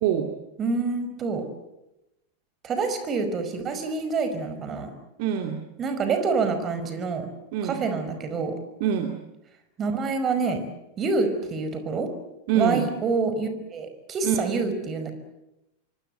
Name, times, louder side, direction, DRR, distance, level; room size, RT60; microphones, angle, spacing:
voice 1, 0.6-1.5 2.6-4.9 5.8-7.3 7.6-8.6 9.8-10.6 11.0-12.1 12.5-15.1, right 4 dB, 25° right, 9 dB, 5.2 m, -27 dB
voice 2, 5.2-5.6 7.5-7.8 8.8-9.1 12.5-12.8 14.2-14.4, right 8 dB, 50° right, 5 dB, 2.6 m, -24 dB
26.0 x 24.5 x 8.0 m, 0.92 s
figure-of-eight pair, 90°, 0 cm